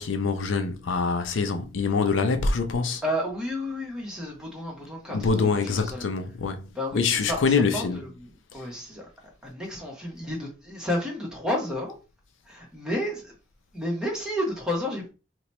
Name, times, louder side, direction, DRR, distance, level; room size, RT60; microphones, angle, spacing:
voice 1, 0.0-3.0 5.1-6.7 6.9-8.0 8.5-8.7, left 4 dB, 75° left, 0.5 m, -25 dB
voice 2, 3.0-6.0 6.7-8.0 8.5-9.1 9.4-11.9 12.5-13.3 13.7-15.1, left 1 dB, 5° right, 1.0 m, -31 dB
3.0 x 2.2 x 4.1 m
head